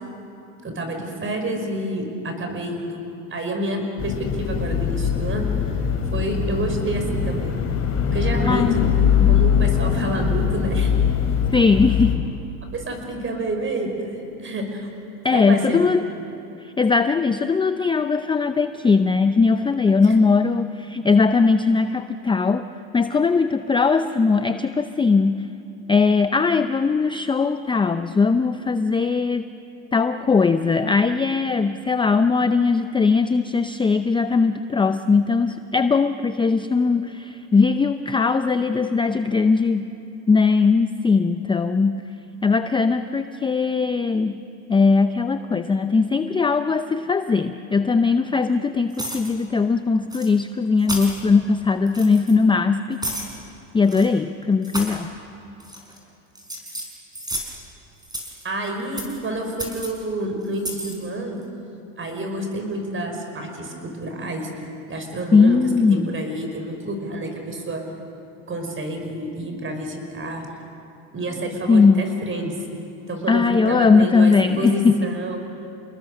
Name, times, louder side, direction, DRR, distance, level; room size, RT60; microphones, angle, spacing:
voice 1, 0.6-3.0 3.3-5.5 6.1-7.6 8.1-8.7 9.3-10.9 12.7-14.9 15.3-15.9 20.0-20.1 58.4-61.4 62.0-64.5 64.9-65.6 65.9-67.8 68.5-70.5 71.1-72.6 73.1-75.4, right 1 dB, 30° right, 4 dB, 5.3 m, -28 dB
sound 1, 4.0-12.2, left 7 dB, 35° left, 3.5 m, -22 dB
voice 2, 11.5-12.2 15.2-16.0 16.6-22.7 22.9-25.5 25.9-29.5 29.9-39.9 40.3-42.0 42.4-44.4 44.7-53.0 53.7-55.1 65.3-66.1 71.7-72.0 73.3-75.0, left 4 dB, 10° left, 10 dB, 0.5 m, -19 dB
sound 2, 48.9-49.3 50.1-50.3 50.8-51.2 51.9-52.3 53.0-53.3 53.8-54.1 54.6-55.0 55.6-56.0 56.3-57.6 58.0-58.4 59.0-59.2 59.6-59.9 60.5-60.9, right 1 dB, 10° right, 5.3 m, -32 dB
28.5 x 20.5 x 6.6 m, 2.8 s
supercardioid pair, 100°, 41 cm